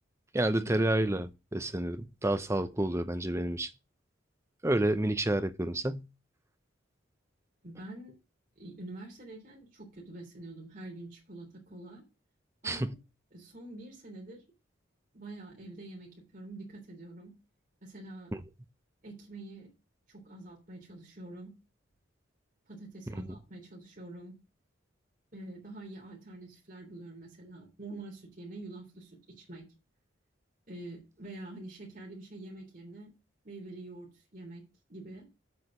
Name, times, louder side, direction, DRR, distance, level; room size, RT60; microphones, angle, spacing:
voice 1, 0.3-3.7 4.6-6.1 12.6-12.9 18.3-18.4, right 1 dB, 15° right, 0.7 m, -29 dB
voice 2, 7.6-8.2 8.6-12.0 12.6-13.0 13.3-14.4 15.1-17.3 17.8-18.3 19.0-19.7 20.1-21.5 22.7-24.3 25.3-29.7 30.7-33.1 33.4-34.6 34.9-35.2, right 2 dB, 45° right, 3.5 m, -46 dB
7.9 x 5.0 x 7.3 m
head